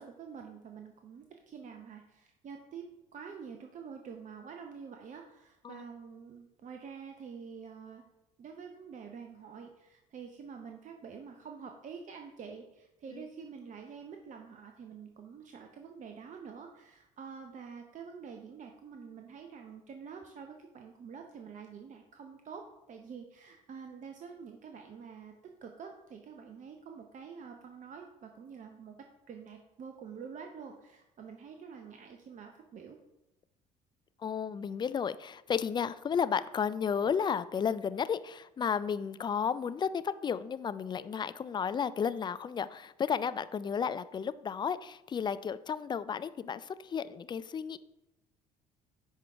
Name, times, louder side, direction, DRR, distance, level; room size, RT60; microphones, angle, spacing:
voice 1, 0.0-2.9 3.1-8.0 8.4-29.0 29.3-33.0, right 6 dB, 40° right, 4 dB, 0.7 m, -47 dB
voice 2, 34.2-47.8, left 7 dB, 25° left, 15 dB, 0.3 m, -33 dB
10.5 x 3.7 x 3.4 m, 0.94 s
figure-of-eight pair, 55°, 20 cm